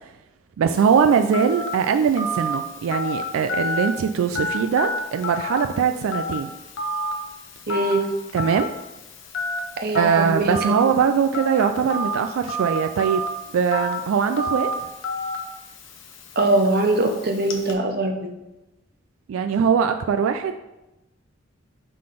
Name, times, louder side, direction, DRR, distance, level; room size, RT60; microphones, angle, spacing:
voice 1, 0.6-6.5 8.3-8.7 9.9-13.3 13.5-14.7 19.3-20.6, right 6 dB, 85° right, 7 dB, 0.3 m, -21 dB
Telephone, 0.7-17.7, left 1 dB, 70° left, 0.8 m, -31 dB
voice 2, 7.7-8.1 9.8-10.6 16.4-18.3, right 2 dB, 50° right, 4 dB, 0.7 m, -22 dB
5.8 x 3.8 x 4.9 m, 0.98 s
head